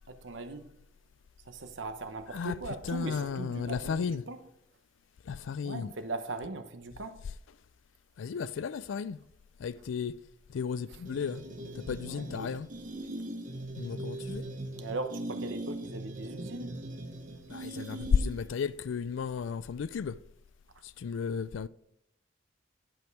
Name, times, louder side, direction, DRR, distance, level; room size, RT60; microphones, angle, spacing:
voice 1, 0.1-0.7 1.5-4.4 5.6-7.2 10.9-11.0 12.0-12.6 14.7-16.8, right 3 dB, 70° right, 0.9 m, -39 dB
voice 2, 2.9-4.2 5.3-5.9 8.2-9.2 9.6-10.1 10.5-11.4 11.8-12.7 13.8-14.4 17.5-20.2 21.0-21.7, left 6 dB, 75° left, 0.4 m, -33 dB
sound 1, 11.0-18.6, right 1 dB, 40° right, 0.9 m, -40 dB
10.5 x 5.2 x 4.7 m
head